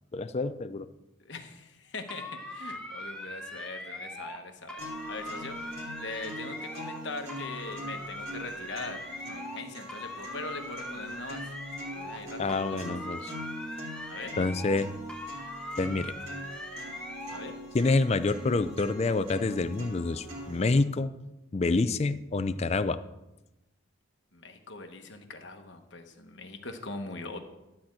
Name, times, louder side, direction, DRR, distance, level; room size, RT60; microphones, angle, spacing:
voice 1, 0.1-0.9 12.4-13.3 14.4-14.9 15.8-16.1 17.7-21.1 21.5-23.0, left 3 dB, 30° left, 12 dB, 0.4 m, -27 dB
voice 2, 1.2-4.8 5.1-11.4 12.0-12.6 12.8-12.9 14.1-14.3 17.3-17.6 24.3-27.4, left 3 dB, 60° left, 5 dB, 1.1 m, -41 dB
sound 1, 2.1-4.4 4.7-7.0 7.3-9.6 9.9-12.2 12.5-14.8 15.1-17.4, left 1 dB, 5° left, 0.9 m, -41 dB
sound 2, 4.8-20.8, equal, 35° right, 2.5 m, -43 dB
12.0 x 4.3 x 7.6 m, 0.96 s
head